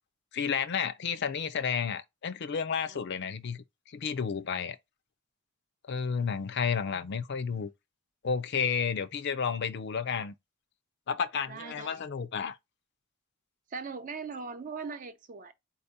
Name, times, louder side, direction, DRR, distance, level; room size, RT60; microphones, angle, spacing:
voice 1, 0.3-3.6 3.9-4.8 5.9-7.7 8.2-10.3 11.1-12.6, left 6 dB, 55° left, 0.4 m, -31 dB
voice 2, 11.5-12.0 13.7-15.5, right 5 dB, 40° right, 0.5 m, -40 dB
4.4 x 2.8 x 3.4 m
head